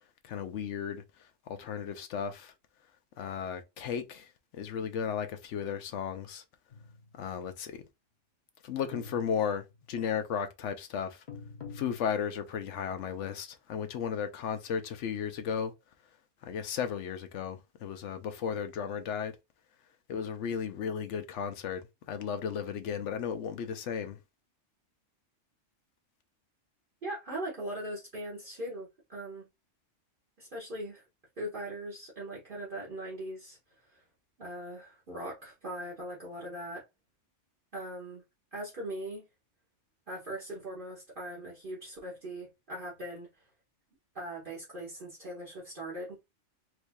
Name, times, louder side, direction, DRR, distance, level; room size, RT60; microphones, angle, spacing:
voice 1, 0.2-1.0 1.5-2.5 3.2-4.3 4.5-6.4 7.2-7.8 8.6-11.2 11.7-15.7 16.4-19.3 20.1-24.2, left 7 dB, 80° left, 1.0 m, -35 dB
sound 1, 6.7-7.3 8.9-9.9 11.3-12.6, left 5 dB, 45° left, 0.8 m, -47 dB
voice 2, 27.0-29.4 30.4-31.0 31.4-33.6 33.8-34.0 34.4-36.8 37.7-38.2 38.5-39.2 40.1-43.3 44.1-46.2, right 1 dB, 45° right, 1.4 m, -40 dB
4.5 x 2.7 x 2.3 m
omnidirectional pair, 1.2 m